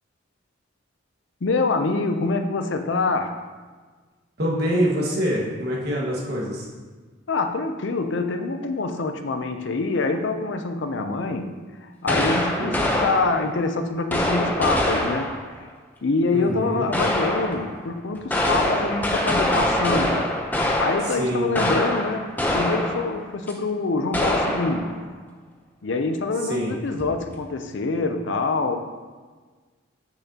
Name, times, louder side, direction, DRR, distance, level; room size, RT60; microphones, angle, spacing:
voice 1, 1.4-3.3 7.3-15.3 16.0-20.2 20.8-25.0 25.8-28.8, left 3 dB, 70° left, 7 dB, 0.6 m, -25 dB
voice 2, 4.4-6.7 12.6-12.8 16.3-16.8 21.1-21.5 26.4-26.7, equal, 55° right, -3 dB, 1.7 m, -25 dB
sound 1, 12.1-13.6 14.1-15.5 16.9-17.8 18.1-23.2 23.5-23.6 24.1-25.0, left 1 dB, 10° left, 0.7 m, -24 dB
8.1 x 6.6 x 2.9 m, 1.4 s
head